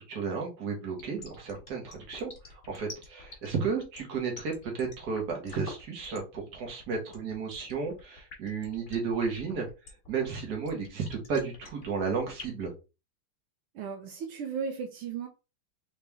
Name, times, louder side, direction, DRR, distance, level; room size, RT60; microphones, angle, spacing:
voice 1, 0.0-9.7 10.1-12.7, right 5 dB, 50° right, 1 dB, 1.8 m, -33 dB
sound 1, 0.9-12.7, left 3 dB, 40° left, 0.8 m, -47 dB
voice 2, 13.7-15.3, right 6 dB, 80° right, 4 dB, 1.6 m, -35 dB
4.2 x 3.4 x 3.4 m, 0.30 s
omnidirectional pair, 2.4 m